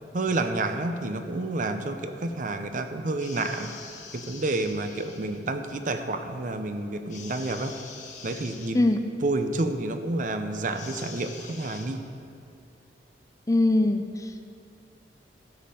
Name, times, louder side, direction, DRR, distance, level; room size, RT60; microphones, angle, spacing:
voice 1, 0.1-3.7 4.1-7.8 8.2-8.8 9.2-12.0, right 2 dB, 45° right, 8 dB, 0.6 m, -29 dB
sound 1, 3.2-5.4 7.1-8.7 10.7-11.9, left 5 dB, 45° left, 1.2 m, -44 dB
voice 2, 13.5-14.5, left 2 dB, 20° left, 7 dB, 0.4 m, -22 dB
12.5 x 5.5 x 7.6 m, 2.5 s
head